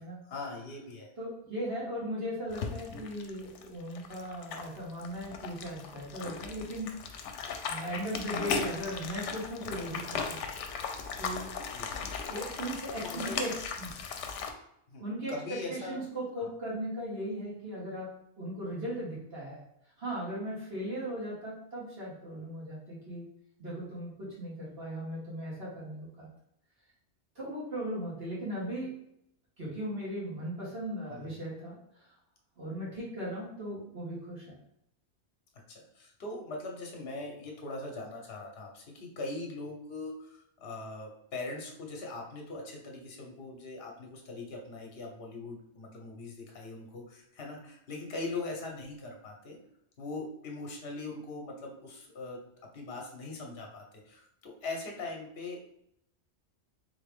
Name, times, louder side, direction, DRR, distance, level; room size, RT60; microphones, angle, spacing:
voice 1, 0.3-1.1 11.7-12.2 13.0-13.4 14.9-15.0 15.3-16.0 16.4-16.5 31.1-31.4 35.7-49.6 50.0-52.4 52.7-55.7, left 2 dB, 60° left, 0 dB, 1.1 m, -41 dB
voice 2, 1.2-10.4 11.2-11.5 12.3-13.9 15.0-18.1 18.4-19.6 20.0-23.2 23.6-26.3 27.4-28.9 29.6-32.1 32.6-34.6, equal, 60° right, -7 dB, 2.0 m, -38 dB
sound 1, 2.5-14.5, left 5 dB, 85° left, 0.9 m, -37 dB
3.8 x 2.9 x 3.5 m, 0.76 s
omnidirectional pair, 1.2 m